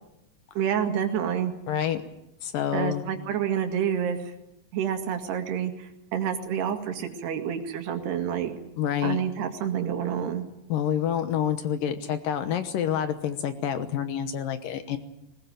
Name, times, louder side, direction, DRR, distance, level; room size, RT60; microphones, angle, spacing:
voice 1, 0.6-1.5 2.7-4.3 4.7-8.6 9.0-10.4, right 8 dB, 85° right, 6 dB, 4.2 m, -28 dB
voice 2, 1.7-2.0 2.4-3.1 8.8-9.2 10.7-15.0, left 9 dB, 70° left, 10 dB, 2.5 m, -28 dB
20.5 x 19.5 x 9.1 m, 0.85 s
omnidirectional pair, 4.6 m